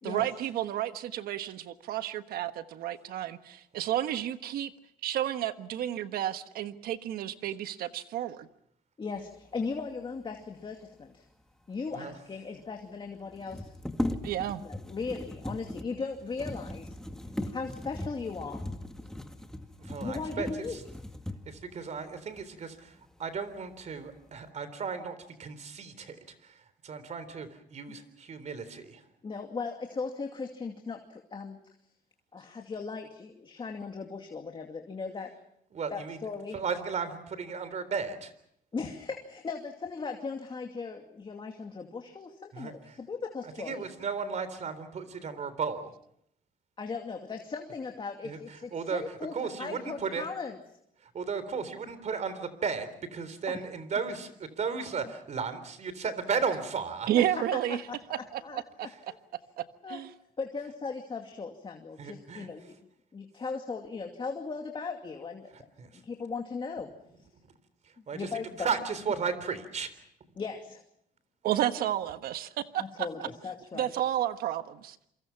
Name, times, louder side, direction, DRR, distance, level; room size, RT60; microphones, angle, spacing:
voice 1, 0.0-4.7 5.0-8.5 14.2-14.6 57.1-57.8 58.1-58.9 59.6-60.1 71.4-73.3 73.7-75.0, right 12 dB, 85° right, 10 dB, 1.4 m, -31 dB
voice 2, 9.0-11.2 11.7-13.7 14.6-17.0 17.5-18.6 20.0-20.8 27.9-28.0 29.2-31.6 32.3-35.3 35.9-36.6 38.7-43.8 46.8-50.6 53.5-53.6 57.2-57.4 57.7-59.2 59.8-60.0 60.4-62.7 63.1-65.5 65.9-66.9 68.0-68.7 70.4-70.8 72.8-73.9, left 4 dB, 35° left, 3 dB, 2.5 m, -38 dB
sound 1, 11.9-12.0 12.1-12.2 13.3-21.7 22.4-22.5 22.9-23.6 23.9-24.5, left 1 dB, 5° left, 2.0 m, -38 dB
voice 3, 19.9-20.5 21.5-22.8 23.2-26.2 26.8-29.0 35.7-36.2 36.5-38.3 42.5-42.7 43.6-45.9 48.2-48.4 48.7-49.0 49.3-50.3 51.1-57.1 62.0-62.5 65.8-65.9 68.1-68.3 68.6-69.9, right 5 dB, 50° right, 13 dB, 3.7 m, -34 dB
28.0 x 24.0 x 5.9 m, 0.74 s
cardioid pair, 95°, 15 cm